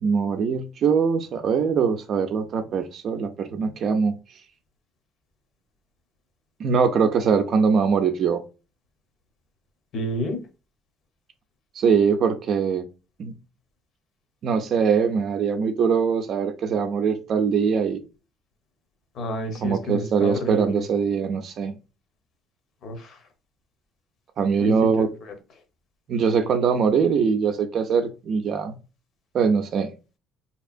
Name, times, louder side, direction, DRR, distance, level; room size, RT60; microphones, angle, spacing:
voice 1, 0.0-4.2 6.6-8.4 11.8-12.9 13.2-13.3 14.4-18.0 19.6-21.8 24.4-25.1 26.1-28.7 29.3-29.9, right 6 dB, 45° right, 0.5 m, -22 dB
voice 2, 9.9-10.4 19.1-20.8 22.8-23.2 24.6-25.3, equal, 50° left, 0.9 m, -30 dB
4.3 x 2.8 x 2.5 m
cardioid pair, 145°, 0 cm